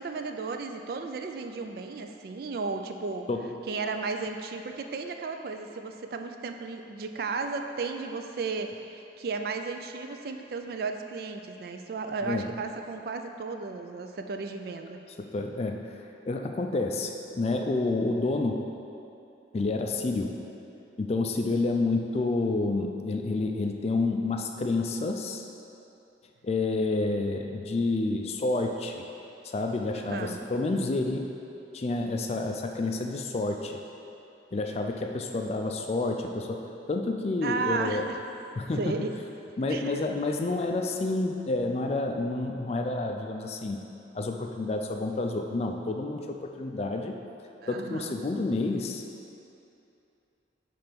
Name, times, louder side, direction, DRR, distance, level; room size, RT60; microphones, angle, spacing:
voice 1, 0.0-3.3 3.7-15.0 29.9-30.4 37.4-38.2 38.8-39.1 39.7-40.0 47.6-48.1, right 4 dB, 55° right, 6 dB, 0.3 m, -34 dB
voice 2, 15.2-16.0 16.2-18.6 19.5-20.4 21.0-25.4 26.4-29.0 29.4-31.3 31.7-33.8 34.5-36.6 36.9-38.1 38.6-39.0 39.6-43.8 44.1-47.1 47.7-49.0, left 2 dB, 35° left, 4 dB, 0.3 m, -29 dB
5.8 x 3.3 x 5.1 m, 2.8 s
head